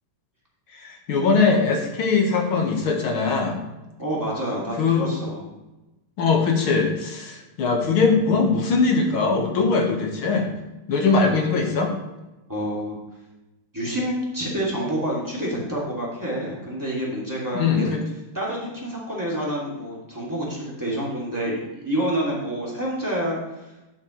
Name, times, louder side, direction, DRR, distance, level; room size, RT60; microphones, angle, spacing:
voice 1, 0.7-3.6 4.8-5.1 6.2-10.5 10.9-11.9 17.5-18.0, left 4 dB, 70° left, 2 dB, 2.3 m, -21 dB
voice 2, 4.0-5.4 12.5-13.0 13.7-17.9 18.3-23.7, right 1 dB, 10° right, -5 dB, 2.6 m, -28 dB
11.0 x 7.4 x 3.2 m, 1.0 s
omnidirectional pair, 2.4 m